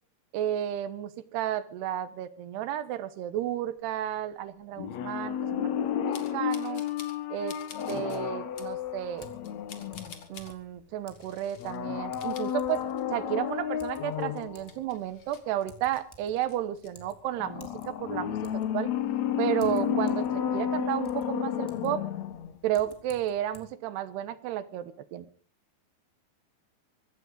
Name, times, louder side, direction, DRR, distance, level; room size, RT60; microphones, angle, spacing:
voice 1, 0.3-5.7 6.0-6.8 7.3-7.5 7.9-9.3 10.3-18.9 19.4-22.1 22.6-25.3, right 11 dB, 85° right, 13 dB, 3.2 m, -32 dB
sound 1, 4.8-10.5 11.6-14.6 17.4-22.6 22.9-23.0, left 9 dB, 65° left, 1.9 m, -32 dB
sound 2, 6.1-7.2 7.5-8.2 8.6-8.7 9.2-10.5 11.1-11.8 12.1-13.3 13.6-13.7 14.1-16.0 16.4-16.9, left 6 dB, 45° left, 2.6 m, -49 dB
Typing, 8.5-23.6, equal, 5° left, 2.7 m, -57 dB
24.5 x 15.0 x 3.9 m, 0.42 s
omnidirectional pair, 4.6 m